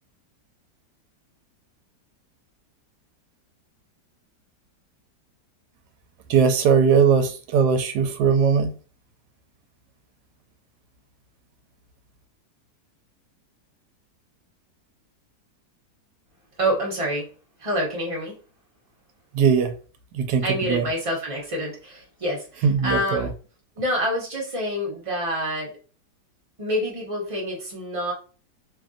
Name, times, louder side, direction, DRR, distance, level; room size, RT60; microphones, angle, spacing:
voice 1, 6.3-8.7 19.3-19.7 20.1-20.9 22.6-23.3, right 6 dB, 75° right, 1.1 m, -20 dB
voice 2, 16.6-17.3 17.6-18.3 20.4-23.3 23.8-25.7 26.6-28.1, equal, 25° right, 0.7 m, -27 dB
3.1 x 2.5 x 2.4 m
omnidirectional pair, 1.9 m